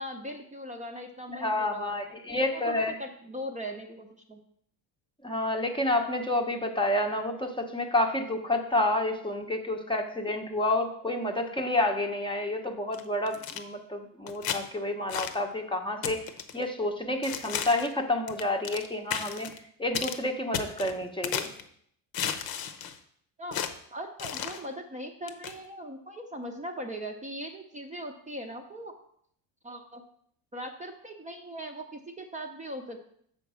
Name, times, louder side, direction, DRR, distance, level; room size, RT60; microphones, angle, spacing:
voice 1, 0.0-4.4 23.4-23.6 23.9-28.9 29.6-30.0 30.5-33.0, equal, 15° right, 3 dB, 0.7 m, -40 dB
voice 2, 1.4-2.9 5.2-16.3 16.5-19.5 19.8-21.5, left 1 dB, 10° left, 3 dB, 0.9 m, -29 dB
sound 1, 12.9-13.6 14.3-14.6 15.1-15.4 16.0-16.6 17.2-17.9 18.3-18.9 19.1-19.6 19.9-20.2 20.5-21.6 22.1-23.0 23.5-23.7 24.2-24.6 25.3-25.5, left 8 dB, 55° left, 0.9 m, -34 dB
6.9 x 4.5 x 6.2 m, 0.66 s
cardioid pair, 115°, 43 cm